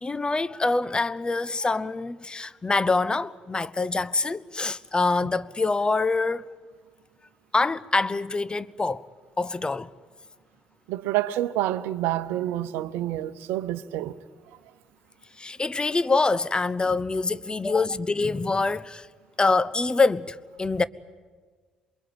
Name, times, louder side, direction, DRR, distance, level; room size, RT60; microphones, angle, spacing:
voice 1, 0.0-6.5 7.5-9.0 9.4-9.9 15.4-19.1 19.4-20.8, left 3 dB, 20° left, 0.9 m, -25 dB
voice 2, 10.9-14.2, right 14 dB, 65° right, 0.9 m, -28 dB
27.5 x 22.5 x 9.0 m
figure-of-eight pair, 45°, 4 cm